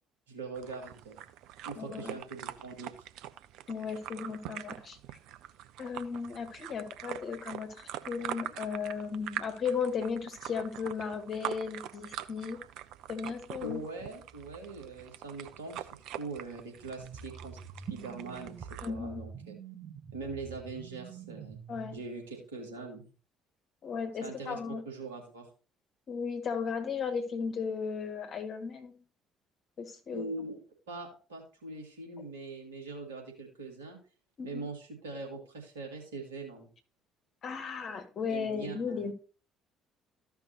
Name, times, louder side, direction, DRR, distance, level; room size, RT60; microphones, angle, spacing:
voice 1, 0.3-1.2 1.6-3.1 13.6-15.9 16.2-17.6 17.9-19.5 20.1-21.6 21.9-23.1 24.2-24.6 24.9-25.5 30.1-34.0 34.4-36.7 38.3-39.1, right 3 dB, 80° right, 2.2 m, -42 dB
sound 1, 0.6-18.9, right 12 dB, 65° right, 0.5 m, -44 dB
voice 2, 1.8-2.2 3.7-5.0 5.8-12.6 13.1-13.8 18.8-19.2 21.7-22.0 23.8-24.8 26.1-28.9 29.8-30.3 34.4-34.7 37.4-39.1, left 5 dB, 50° left, 1.9 m, -35 dB
sound 2, 17.0-22.0, right 7 dB, 45° right, 1.0 m, -46 dB
14.0 x 5.8 x 2.9 m
figure-of-eight pair, 50°, 0 cm